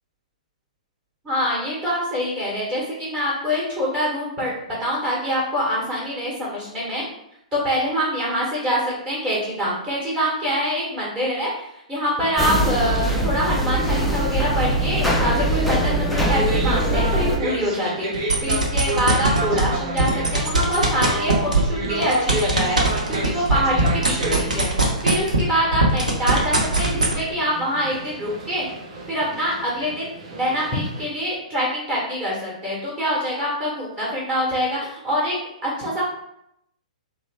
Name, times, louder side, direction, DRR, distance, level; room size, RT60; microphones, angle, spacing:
voice 1, 1.2-7.0 7.5-11.5 11.9-24.7 25.0-28.7 29.1-35.3 35.6-36.0, equal, 20° right, -6 dB, 1.1 m, -25 dB
sound 1, 12.4-17.4, right 1 dB, ahead, 0.4 m, -21 dB
sound 2, 16.2-31.1, right 2 dB, 45° right, 0.7 m, -31 dB
sound 3, 18.1-19.6 20.0-25.5 25.7-27.1, right 2 dB, 80° right, 0.8 m, -20 dB
3.0 x 2.1 x 3.3 m, 0.77 s
figure-of-eight pair, 115°, 4 cm